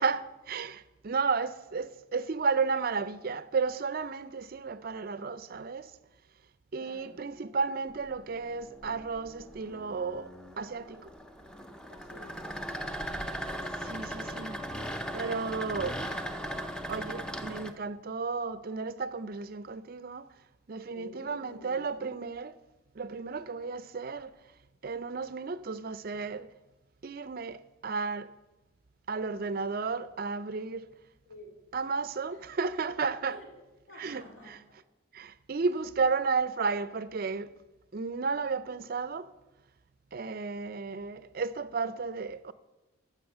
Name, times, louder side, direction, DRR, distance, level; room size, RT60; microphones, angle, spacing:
voice 1, 0.0-5.9 6.7-11.1 13.8-14.6 15.1-16.0 16.9-20.3 20.7-22.6 23.0-24.3 24.8-26.5 27.0-28.3 29.1-30.9 31.7-33.4 34.0-34.6 35.1-37.5 37.9-39.3 40.1-42.5, right 4 dB, 45° right, 0.4 m, -33 dB
voice 2, 6.8-7.4 11.8-13.4 20.9-21.9 31.2-31.5 32.3-32.4 33.3-33.5 33.9-34.8, left 1 dB, 70° left, 4.0 m, -51 dB
sound 1, 7.9-17.7, equal, 5° left, 0.5 m, -38 dB
16.5 x 6.2 x 6.9 m
head